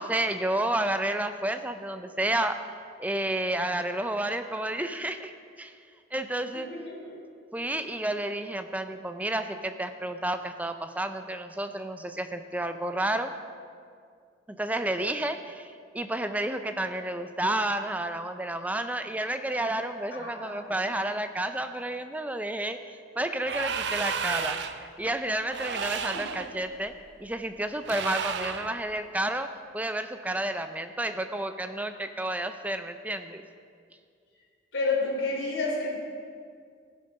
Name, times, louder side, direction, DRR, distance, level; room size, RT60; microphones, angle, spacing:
voice 1, 0.0-2.6 3.0-5.3 5.6-5.7 6.1-6.7 7.5-13.3 14.6-22.8 23.2-26.9 27.2-33.4, right 1 dB, 10° right, 8 dB, 0.5 m, -31 dB
voice 2, 6.7-7.2 20.1-20.6 26.1-26.2 34.7-35.9, left 3 dB, 85° left, -4 dB, 3.2 m, -30 dB
sound 1, 23.4-24.9 25.5-26.5 27.8-28.8, right 6 dB, 65° right, 0.5 m, -32 dB
15.5 x 6.8 x 5.4 m, 2.2 s
head